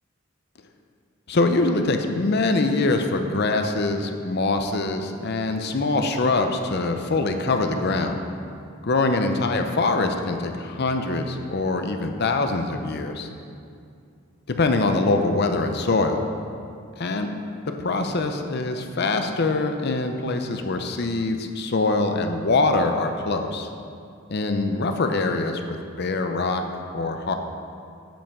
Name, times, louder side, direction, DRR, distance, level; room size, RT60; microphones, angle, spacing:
voice 1, 1.3-8.2 8.8-13.3 14.6-16.2 17.0-17.3 17.7-23.7 24.3-26.6 26.9-27.3, left 3 dB, 50° left, 6 dB, 0.7 m, -23 dB
8.7 x 5.6 x 7.2 m, 2.4 s
head